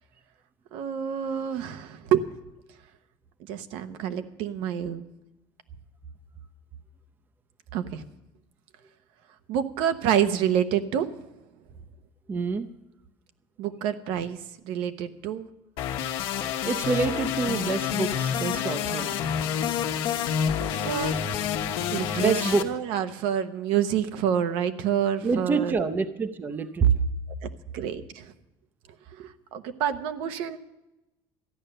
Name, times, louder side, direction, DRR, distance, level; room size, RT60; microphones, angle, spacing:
voice 1, 0.7-2.3 3.5-5.1 7.7-8.0 9.5-11.2 13.6-14.4 14.6-15.5 20.6-21.2 21.9-25.8 27.4-27.5 27.7-28.3 29.2-30.6, right 9 dB, 80° right, 10 dB, 0.9 m, -28 dB
voice 2, 12.3-12.7 16.6-19.1 22.2-22.7 25.2-27.0, right 5 dB, 20° right, 10 dB, 0.6 m, -26 dB
sound 1, 15.8-22.6, left 8 dB, 75° left, 1.1 m, -28 dB
13.5 x 10.0 x 6.7 m, 0.97 s
cardioid pair, 165°, 9 cm